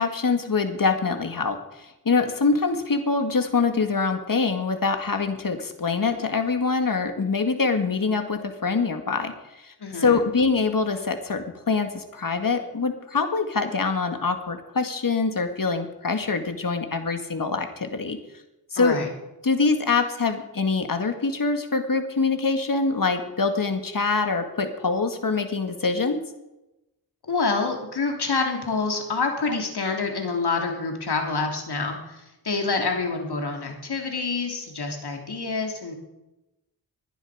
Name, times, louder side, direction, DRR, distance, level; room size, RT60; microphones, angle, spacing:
voice 1, 0.0-18.2 18.7-19.0 19.4-26.2, left 4 dB, 55° left, 7 dB, 2.1 m, -24 dB
voice 2, 9.8-10.2 18.8-19.1 27.2-35.9, left 4 dB, 70° left, 2 dB, 3.2 m, -27 dB
20.5 x 11.0 x 5.1 m, 0.96 s
cardioid pair, 60°, 41 cm